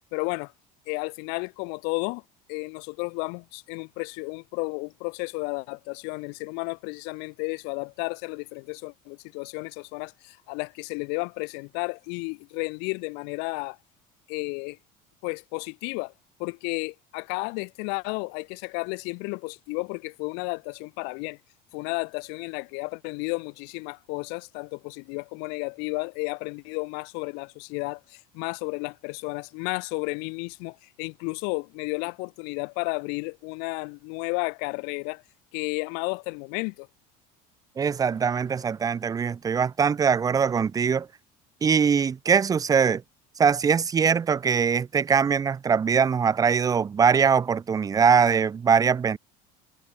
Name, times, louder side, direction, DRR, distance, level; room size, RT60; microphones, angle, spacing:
voice 1, 0.1-0.5 0.9-2.2 2.5-13.8 14.3-14.8 15.2-16.1 16.4-21.4 21.7-35.2 35.5-36.9, left 36 dB, 75° left, 1.0 m, -32 dB
voice 2, 37.8-41.1 41.6-43.0 43.4-49.2, right 6 dB, 20° right, 0.5 m, -22 dB
supercardioid pair, 120°, 17 cm